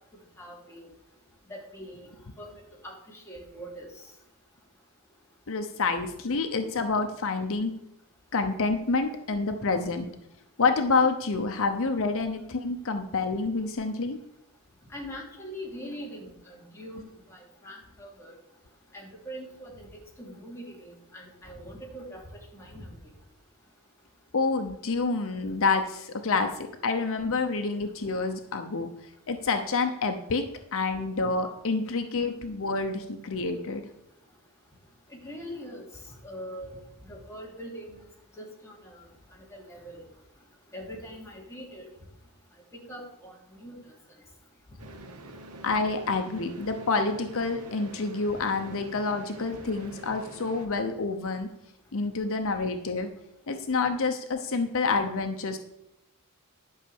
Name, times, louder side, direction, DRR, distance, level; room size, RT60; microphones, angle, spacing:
voice 1, 0.4-0.9 1.5-2.1 2.4-2.5 2.8-3.9 14.9-18.4 18.9-22.2 22.5-22.9 35.1-35.8 36.2-36.7 37.0-38.0 38.4-39.0 39.5-40.0 40.7-41.9 42.7-43.3 43.6-43.9, equal, 10° left, -3 dB, 2.9 m, -42 dB
voice 2, 5.5-7.7 8.3-10.1 10.6-14.2 24.3-28.9 29.3-30.4 30.7-33.8 45.6-51.5 51.9-53.1 53.5-55.6, left 4 dB, 65° left, 5 dB, 0.8 m, -28 dB
sound 1, 44.8-50.7, right 1 dB, 75° right, 1.2 m, -45 dB
11.5 x 5.6 x 7.0 m, 0.85 s
head